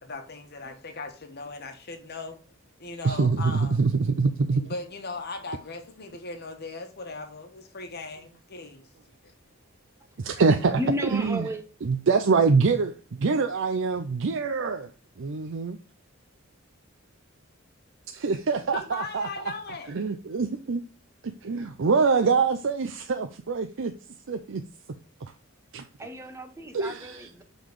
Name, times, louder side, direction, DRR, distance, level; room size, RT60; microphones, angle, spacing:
voice 1, 0.0-2.4 2.8-3.8 4.5-8.9 9.2-9.3 18.7-19.9, left 3 dB, 50° left, 1.3 m, -38 dB
voice 2, 3.0-4.6 10.2-10.8 11.1-11.5 11.8-14.9 15.2-15.8 18.1-19.5 19.9-20.8 21.2-23.9 24.3-24.6 25.2-25.3 25.7-25.9 26.7-27.4, right 4 dB, 65° right, 0.5 m, -25 dB
voice 3, 10.7-11.6 26.0-27.4, equal, 15° right, 0.7 m, -33 dB
7.0 x 3.9 x 4.7 m
head